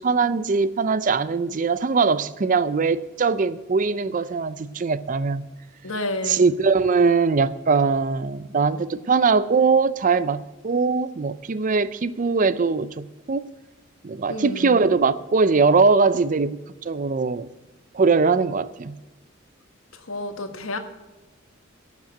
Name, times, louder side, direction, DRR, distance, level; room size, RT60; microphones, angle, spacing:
voice 1, 0.0-5.5 6.3-13.5 14.0-16.6 16.9-17.5 17.9-19.0, right 4 dB, 40° right, 0.5 m, -21 dB
voice 2, 5.8-6.4 14.3-14.8 19.9-20.8, left 2 dB, 80° left, 1.4 m, -30 dB
11.5 x 7.4 x 7.6 m
head